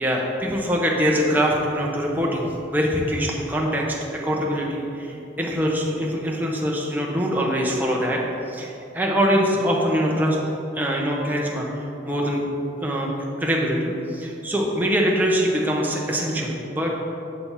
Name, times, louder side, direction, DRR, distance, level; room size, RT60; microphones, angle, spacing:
voice 1, 0.0-8.2 8.5-10.4 10.7-12.4 12.8-13.1 13.4-16.9, equal, 10° right, -2 dB, 0.8 m, -23 dB
7.1 x 6.7 x 3.5 m, 2.8 s
head